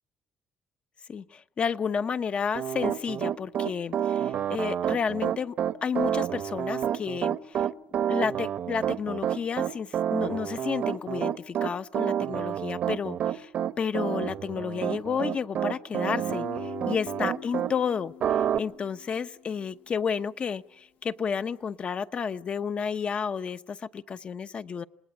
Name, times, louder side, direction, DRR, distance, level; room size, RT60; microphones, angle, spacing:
voice 1, 1.1-5.5 5.8-7.7 8.1-13.5 13.8-18.1 18.6-24.8, left 6 dB, 45° left, 11 dB, 1.0 m, -31 dB
Piano, 2.5-17.7 18.2-18.6, right 9 dB, 65° right, 0.9 m, -29 dB
Guitar, 16.3-19.9, left 7 dB, 75° left, 1.1 m, -43 dB
27.5 x 20.0 x 9.6 m, 0.82 s
cardioid pair, 100°, 3 cm